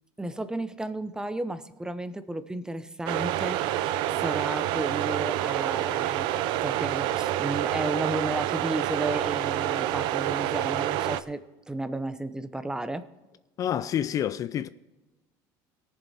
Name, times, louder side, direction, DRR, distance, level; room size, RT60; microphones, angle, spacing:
voice 1, 0.2-13.0, right 2 dB, 10° right, 0.7 m, -33 dB
sound 1, 3.1-11.2, right 13 dB, 70° right, 0.6 m, -28 dB
voice 2, 13.6-14.7, left 10 dB, 40° left, 0.4 m, -28 dB
18.5 x 7.2 x 4.2 m
supercardioid pair, 115°, 9 cm